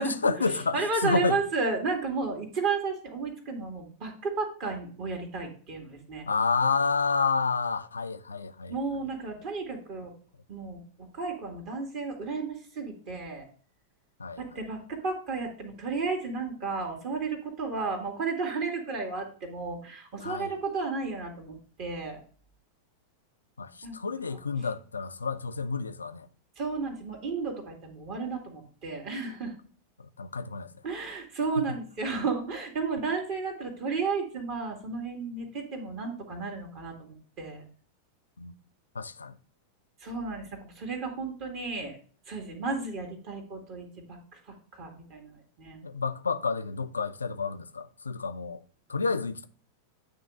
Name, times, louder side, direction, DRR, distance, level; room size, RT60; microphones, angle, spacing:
voice 1, 0.0-1.4 6.3-9.0 14.2-14.6 20.2-20.6 23.6-26.3 30.0-30.7 31.6-31.8 38.4-38.5 38.9-39.4 45.8-48.6 48.9-49.5, left 4 dB, 75° left, 0.4 m, -30 dB
voice 2, 0.7-6.3 8.7-10.1 10.5-13.4 14.4-22.2 23.8-24.0 26.6-29.5 30.8-37.7 40.0-42.0 42.3-44.2 44.7-45.8, right 4 dB, 45° right, 1.8 m, -33 dB
9.2 x 3.1 x 4.7 m
figure-of-eight pair, 90°, 0 cm